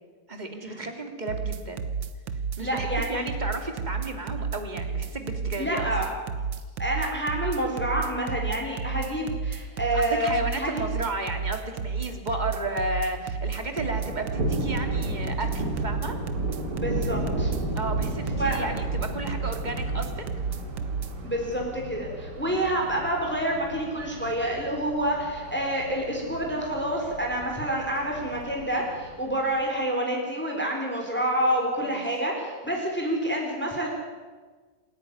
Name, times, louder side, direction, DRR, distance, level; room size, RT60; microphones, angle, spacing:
voice 1, 0.3-1.9 2.6-5.9 9.9-16.2 17.7-20.2 22.5-22.7 31.8-32.0, right 2 dB, 20° right, 5 dB, 2.5 m, -33 dB
sound 1, 1.3-21.1, right 6 dB, 75° right, 1.9 m, -31 dB
voice 2, 2.6-3.2 5.6-6.1 6.8-10.7 16.7-17.5 18.3-18.7 21.2-33.9, right 1 dB, 5° left, 0 dB, 3.9 m, -28 dB
Thunder, 13.7-29.6, right 1 dB, 60° right, 2.9 m, -34 dB
27.0 x 10.5 x 9.9 m, 1.4 s
omnidirectional pair, 2.1 m